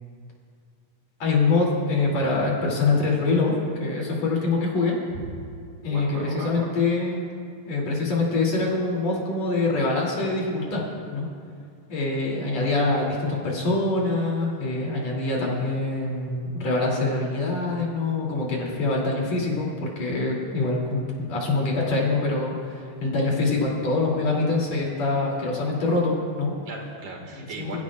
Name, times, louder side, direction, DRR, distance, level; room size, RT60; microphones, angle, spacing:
voice 1, 1.2-3.5 3.8-4.9 5.8-7.2 7.7-10.8 11.1-11.3 11.9-26.5 27.6-27.8, left 3 dB, 65° left, -3 dB, 4.2 m, -24 dB
voice 2, 5.9-6.7 26.7-27.8, right 3 dB, 85° right, 1 dB, 3.5 m, -37 dB
28.0 x 16.0 x 2.5 m, 2.2 s
omnidirectional pair, 3.4 m